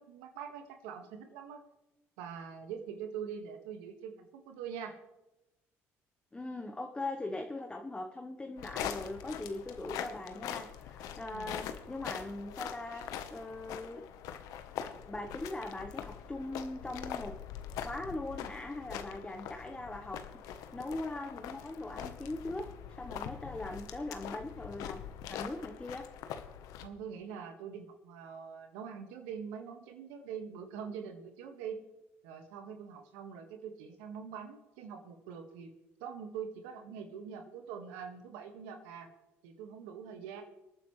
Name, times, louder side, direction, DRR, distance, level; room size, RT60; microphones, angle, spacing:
voice 1, 0.0-1.6 2.2-5.0 11.3-11.6 12.9-13.0 26.8-31.8 32.2-35.7 36.0-39.1 39.4-40.4, right 7 dB, 90° right, 5 dB, 1.8 m, -44 dB
voice 2, 6.3-14.0 14.7-14.8 15.1-17.3 17.8-22.7 23.0-26.0, left 2 dB, 15° left, 4 dB, 1.2 m, -40 dB
sound 1, 8.6-26.9, left 9 dB, 75° left, 1.1 m, -43 dB
25.0 x 9.2 x 3.3 m, 0.94 s
supercardioid pair, 80°, 6 cm